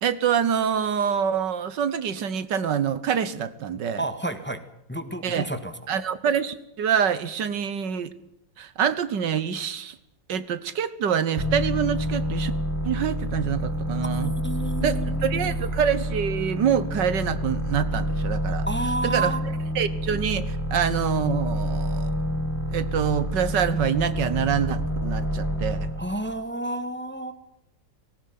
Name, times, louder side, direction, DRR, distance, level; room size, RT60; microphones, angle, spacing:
voice 1, 0.0-4.0 5.2-5.5 5.9-8.1 8.6-10.0 10.3-12.5 12.8-14.3 14.8-18.7 19.0-19.3 19.8-22.1 22.7-25.9, right 8 dB, 75° right, 15 dB, 1.7 m, -26 dB
voice 2, 4.0-4.6 4.9-5.9 14.2-15.6 18.6-19.5 26.0-27.3, right 2 dB, 5° left, 9 dB, 1.5 m, -30 dB
sound 1, 11.4-26.1, equal, 10° right, 4.6 m, -28 dB
19.0 x 18.0 x 9.4 m, 0.80 s
omnidirectional pair, 2.0 m